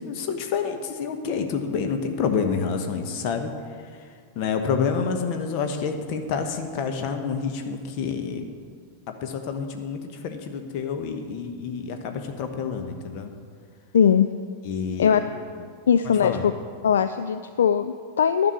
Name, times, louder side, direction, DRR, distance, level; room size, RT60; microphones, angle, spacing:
voice 1, 0.0-3.5 4.3-8.5 9.1-13.3 14.6-15.2 16.2-16.5, left 6 dB, 45° left, 6 dB, 1.1 m, -28 dB
voice 2, 13.9-14.3 15.0-15.2 15.9-16.5 16.8-18.5, left 8 dB, 65° left, 10 dB, 0.3 m, -20 dB
11.0 x 6.0 x 8.4 m, 2.1 s
figure-of-eight pair, 90°, 0 cm